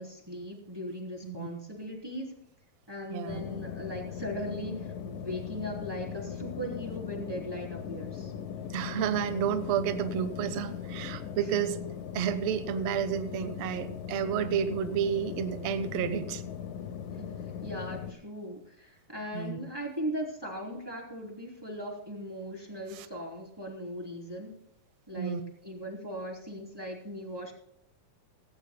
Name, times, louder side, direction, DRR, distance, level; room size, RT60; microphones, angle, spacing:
voice 1, 0.0-2.4 2.9-8.3 17.1-24.6 25.1-27.5, equal, 5° right, -1 dB, 2.8 m, -39 dB
voice 2, 3.1-3.4 8.7-11.8 12.1-16.4 19.3-19.6 22.9-23.1 25.1-25.4, right 8 dB, 70° right, 11 dB, 1.5 m, -31 dB
sound 1, 3.3-18.1, left 8 dB, 70° left, 2.4 m, -39 dB
18.0 x 17.5 x 2.2 m, 0.77 s
omnidirectional pair, 4.4 m